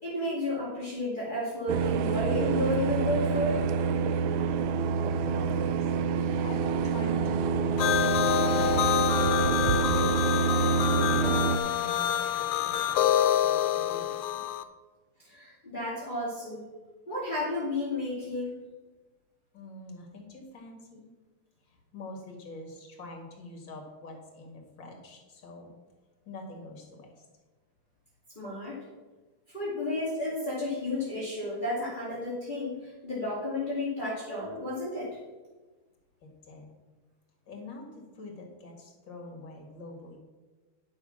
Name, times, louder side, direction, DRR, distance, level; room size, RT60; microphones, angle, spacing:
voice 1, 0.0-3.6 15.2-16.6 17.1-18.6 28.4-28.7 29.5-35.2, left 1 dB, 20° left, -9 dB, 2.5 m, -32 dB
sound 1, 1.7-11.6, right 6 dB, 80° right, 1.4 m, -27 dB
voice 2, 4.8-9.1 9.6-10.1 10.9-14.5 19.5-21.1 21.6-25.7 26.3-27.2 36.2-36.7 37.5-40.2, left 2 dB, 60° left, 2 dB, 2.5 m, -46 dB
sound 2, 7.8-14.6, left 11 dB, 90° left, 1.5 m, -27 dB
10.5 x 5.6 x 6.3 m, 1.3 s
omnidirectional pair, 2.3 m